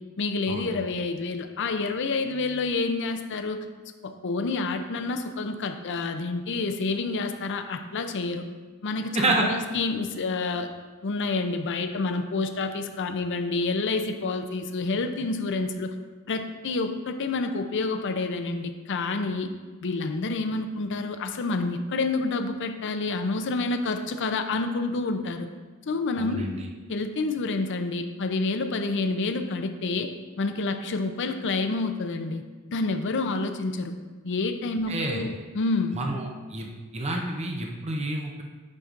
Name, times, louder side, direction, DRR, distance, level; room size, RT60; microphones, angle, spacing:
voice 1, 0.2-3.6 4.0-8.4 8.8-10.7 11.0-15.9 16.3-19.5 19.8-25.5 25.9-26.5 26.9-30.1 30.4-32.4 32.7-33.9 34.2-36.0, left 3 dB, 55° left, 7 dB, 0.5 m, -28 dB
voice 2, 9.1-9.4 26.2-26.6 34.9-35.2 35.9-36.7 36.9-38.4, right 2 dB, 30° right, 0 dB, 0.7 m, -28 dB
9.7 x 5.9 x 2.5 m, 1.4 s
head